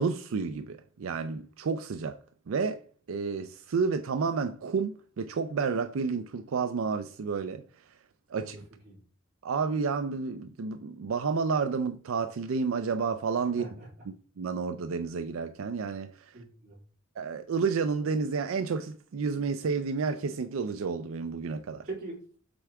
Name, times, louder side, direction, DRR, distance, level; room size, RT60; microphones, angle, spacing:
voice 1, 0.0-2.2 2.5-2.8 3.1-8.0 8.3-8.6 9.4-13.7 14.1-16.4 17.2-21.9, right 5 dB, 80° right, 0.4 m, -30 dB
voice 2, 16.3-16.8 21.9-22.5, right 3 dB, 45° right, 3.8 m, -42 dB
7.8 x 3.4 x 4.7 m
head